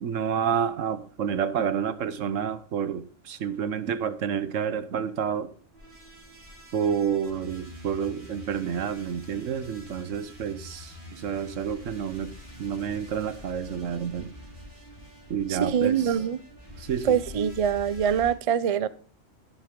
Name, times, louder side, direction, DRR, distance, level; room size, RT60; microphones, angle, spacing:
voice 1, 0.0-5.5 6.7-12.3 12.6-14.3 15.3-16.1 16.8-17.2, right 7 dB, 80° right, 1.3 m, -29 dB
sound 1, 5.7-18.3, left 1 dB, 40° right, 2.5 m, -46 dB
voice 2, 15.5-16.4 17.0-18.9, right 8 dB, 55° right, 0.4 m, -24 dB
10.5 x 10.5 x 3.8 m
omnidirectional pair, 1.3 m